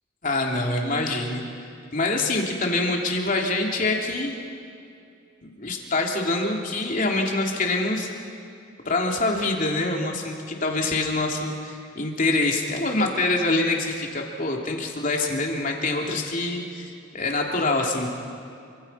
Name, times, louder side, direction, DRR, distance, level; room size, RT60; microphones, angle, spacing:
voice 1, 0.2-1.4 1.9-4.3 5.4-8.1 8.8-18.1, left 2 dB, 45° left, 1 dB, 3.1 m, -25 dB
28.0 x 25.5 x 5.7 m, 2.5 s
head